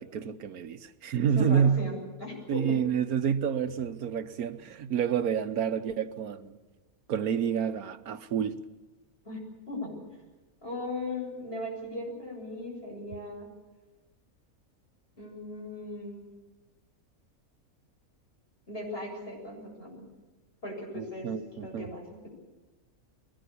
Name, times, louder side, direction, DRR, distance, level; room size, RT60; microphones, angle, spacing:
voice 1, 0.0-1.9 2.5-6.6 7.1-8.6 20.9-21.9, right 8 dB, 85° right, 1.4 m, -29 dB
voice 2, 1.3-2.8 9.2-9.4 9.7-10.0 10.6-13.5 15.2-16.3 18.7-20.1 20.6-21.3 21.6-22.3, left 2 dB, 40° left, 7.7 m, -38 dB
23.0 x 18.5 x 8.4 m
omnidirectional pair, 1.5 m